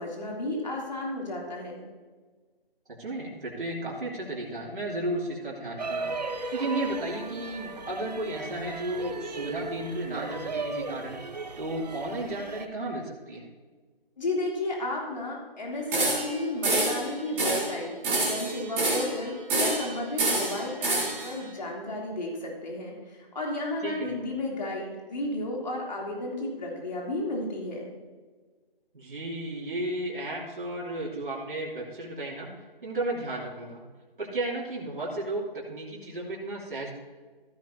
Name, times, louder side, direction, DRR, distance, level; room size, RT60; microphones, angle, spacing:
voice 1, 0.0-1.8 14.2-27.9, left 1 dB, 45° left, -2 dB, 3.3 m, -33 dB
voice 2, 3.0-11.2 11.6-13.4 23.8-24.1 28.9-32.5 32.8-33.8 34.2-36.9, right 1 dB, 60° right, -4 dB, 3.0 m, -33 dB
sound 1, 5.8-12.7, right 3 dB, 45° right, 0.9 m, -36 dB
sound 2, 15.9-16.4 16.6-17.0 17.4-17.7 18.0-19.1 19.5-19.9 20.2-21.3, right 2 dB, 5° right, 1.7 m, -26 dB
15.5 x 8.9 x 2.8 m, 1.4 s
figure-of-eight pair, 165°, 30 cm